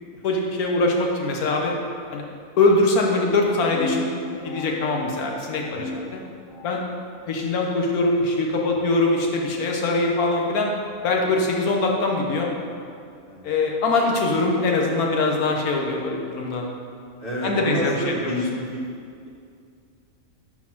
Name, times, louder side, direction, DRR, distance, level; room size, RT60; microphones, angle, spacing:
voice 1, 0.2-1.7 2.1-2.2 2.6-4.1 4.4-6.2 6.6-6.8 7.3-10.7 11.0-12.5 13.4-16.7 17.4-18.4, left 2 dB, 90° left, 0 dB, 1.4 m, -22 dB
sound 1, 3.5-6.9, left 2 dB, 70° left, 0.9 m, -35 dB
voice 2, 17.2-19.0 19.2-19.3, equal, 55° left, -7 dB, 1.9 m, -29 dB
5.9 x 4.6 x 5.8 m, 2.3 s
omnidirectional pair, 1.5 m